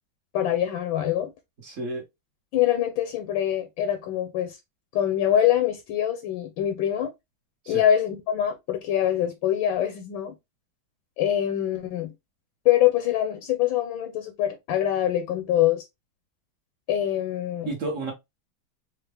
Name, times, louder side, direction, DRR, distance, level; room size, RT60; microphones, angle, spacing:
voice 1, 0.3-1.3 2.5-4.6 4.9-7.1 7.7-10.3 11.2-12.1 12.6-15.8 16.9-17.7, left 11 dB, 80° left, 1.4 m, -24 dB
voice 2, 1.6-2.0 7.6-7.8 17.6-18.1, right 2 dB, 50° right, 1.0 m, -31 dB
4.4 x 2.1 x 3.2 m
omnidirectional pair, 2.2 m